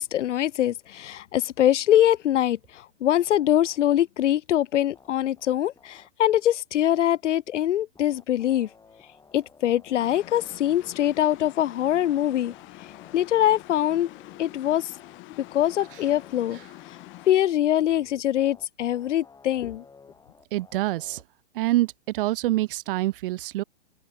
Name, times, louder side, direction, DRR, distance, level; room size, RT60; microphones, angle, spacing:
voice 1, 0.0-8.7 9.3-12.5 13.1-14.1 14.4-14.9 15.5-16.6 17.3-19.8, left 12 dB, 75° left, 0.8 m, -23 dB
sound 1, 3.2-3.8 4.5-4.6 4.9-6.1 8.0-14.6 14.9-21.2, left 4 dB, 10° left, 6.7 m, -54 dB
sound 2, 10.0-17.3, left 21 dB, 30° left, 7.9 m, -46 dB
voice 2, 20.5-21.2 21.5-23.6, right 16 dB, 45° right, 1.0 m, -26 dB
hypercardioid pair, 135°, 36 cm